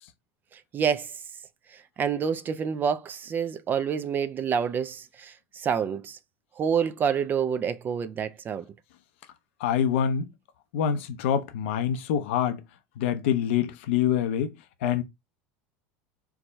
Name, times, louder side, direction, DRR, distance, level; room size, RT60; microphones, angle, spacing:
voice 1, 0.5-1.1 2.0-6.2 6.6-8.6, right 7 dB, 30° right, 0.4 m, -28 dB
voice 2, 9.6-10.2 10.7-12.6 13.0-14.5 14.8-15.0, left 9 dB, 80° left, 0.7 m, -25 dB
4.6 x 2.3 x 4.0 m
supercardioid pair, 115°, 6 cm